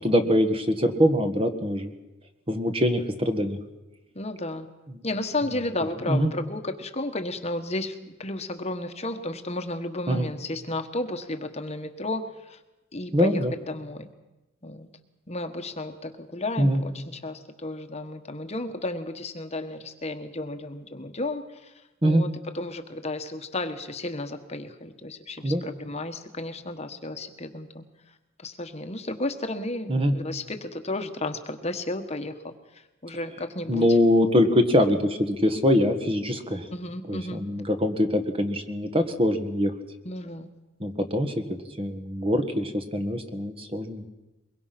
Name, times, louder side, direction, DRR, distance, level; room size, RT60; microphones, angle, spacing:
voice 1, 0.0-1.9 2.5-3.6 6.1-6.3 10.1-10.3 13.1-13.5 16.6-16.8 22.0-22.2 25.4-25.6 29.9-30.1 33.7-36.7 37.1-39.7 40.8-44.1, equal, 30° right, 7 dB, 1.6 m, -23 dB
voice 2, 4.1-4.7 5.0-7.9 8.2-12.6 12.9-13.4 13.7-14.1 14.6-14.9 15.3-21.7 22.0-22.3 22.5-27.8 28.4-32.5 33.0-33.9 36.7-37.4 40.0-40.5, left 2 dB, 35° left, 7 dB, 1.3 m, -33 dB
23.0 x 22.0 x 6.0 m, 1.0 s
head